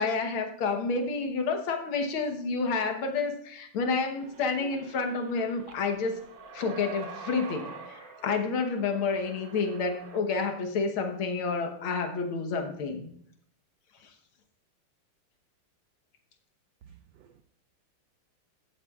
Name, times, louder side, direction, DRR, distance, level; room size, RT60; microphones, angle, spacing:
voice 1, 0.0-6.2 6.5-13.1, left 4 dB, 70° left, 5 dB, 1.9 m, -29 dB
sound 1, 4.2-10.2, right 4 dB, 55° right, 1.2 m, -46 dB
voice 2, 16.9-17.4, right 8 dB, 85° right, 9 dB, 0.9 m, -56 dB
15.0 x 8.1 x 2.4 m, 0.65 s
omnidirectional pair, 2.4 m